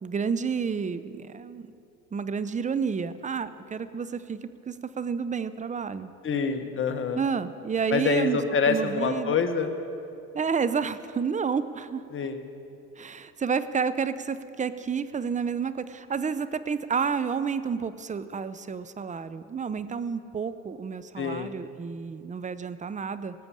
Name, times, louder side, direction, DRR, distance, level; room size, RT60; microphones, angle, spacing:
voice 1, 0.0-1.7 2.1-4.4 4.7-6.1 7.1-8.4 8.7-9.4 10.3-12.0 13.0-23.3, right 6 dB, 20° right, 14 dB, 0.7 m, -30 dB
voice 2, 6.2-7.2 7.9-9.7 12.1-12.4 21.2-21.5, left 5 dB, 40° left, 7 dB, 1.4 m, -26 dB
18.5 x 6.9 x 7.5 m, 2.6 s
supercardioid pair, 85°, 33 cm